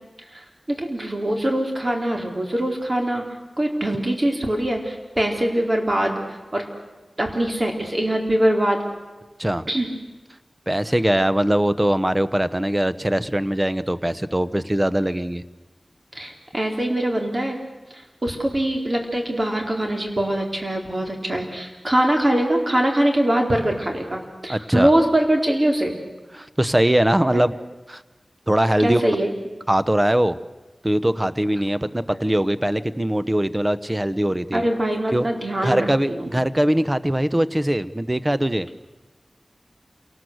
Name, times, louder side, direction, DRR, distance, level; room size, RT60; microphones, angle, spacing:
voice 1, 0.3-3.2 3.6-6.6 7.2-8.8 9.7-9.9 16.1-17.6 17.9-26.0 27.3-27.5 28.8-29.3 34.5-36.3, right 1 dB, 45° right, 2 dB, 4.2 m, -23 dB
voice 2, 10.7-15.4 24.5-24.9 26.3-27.6 27.9-28.0 28.5-29.0 29.7-30.4 30.8-34.7 35.1-35.3 35.6-38.7, right 1 dB, 20° right, 13 dB, 1.0 m, -21 dB
27.5 x 18.5 x 8.0 m, 1.2 s
wide cardioid pair, 55°, 0 cm